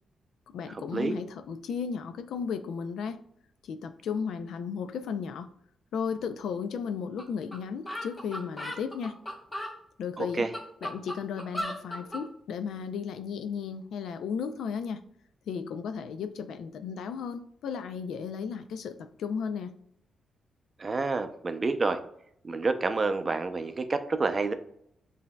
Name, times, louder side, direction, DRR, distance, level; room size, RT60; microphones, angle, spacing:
voice 1, 0.5-3.2 3.6-5.5 5.9-9.2 10.0-10.5 10.8-15.0 15.5-19.7, left 6 dB, 85° left, 10 dB, 0.4 m, -34 dB
sound 1, 7.2-7.3 7.5-7.6 7.9-9.7 10.3-12.2, equal, 20° left, 1.1 m, -36 dB
voice 2, 10.2-10.5 20.8-22.0 22.4-24.5, right 3 dB, 35° right, 9 dB, 0.4 m, -28 dB
7.2 x 2.6 x 2.2 m, 0.70 s
cardioid pair, 105°, 0 cm